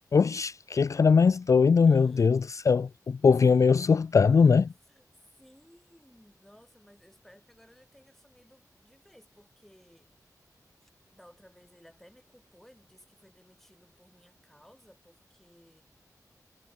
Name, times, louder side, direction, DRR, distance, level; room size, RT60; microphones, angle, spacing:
voice 1, 0.1-4.7, left 5 dB, 50° left, 0.3 m, -21 dB
voice 2, 1.9-2.3 3.3-3.9 4.3-4.5 4.9-5.0 5.4-10.1 10.8-15.8, equal, 5° left, 4.9 m, -58 dB
wide cardioid pair, 85°, 7 cm